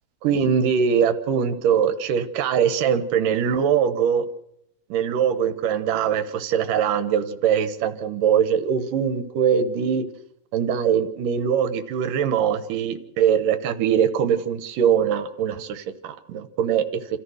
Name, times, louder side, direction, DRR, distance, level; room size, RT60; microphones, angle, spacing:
voice 1, 0.2-4.3 4.9-10.1 10.5-17.0, right 8 dB, 70° right, 10 dB, 2.6 m, -22 dB
28.5 x 14.0 x 6.5 m, 0.77 s
omnidirectional pair, 4.2 m